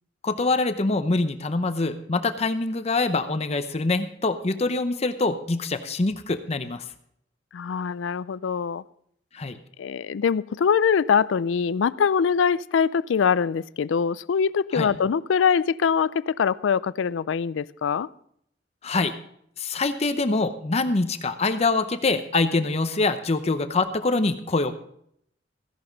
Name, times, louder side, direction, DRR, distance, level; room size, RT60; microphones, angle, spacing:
voice 1, 0.2-6.8 9.3-9.6 14.7-14.9 18.8-19.1 19.6-24.7, left 3 dB, 35° left, 0.7 m, -24 dB
voice 2, 7.5-8.8 9.8-18.1, left 6 dB, 85° left, 0.4 m, -23 dB
15.5 x 11.0 x 3.9 m
head